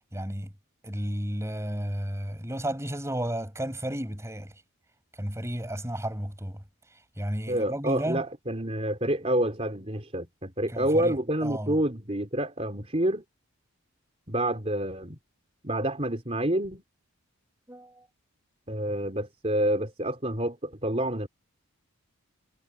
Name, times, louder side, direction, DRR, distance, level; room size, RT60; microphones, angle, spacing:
voice 1, 0.1-0.5 0.8-4.5 5.2-6.6 7.2-8.2 10.7-11.8 17.7-18.0, equal, 10° right, 6.3 m, -33 dB
voice 2, 7.5-13.2 14.3-15.2 15.6-16.8 18.7-21.3, right 1 dB, 30° right, 3.7 m, -28 dB
head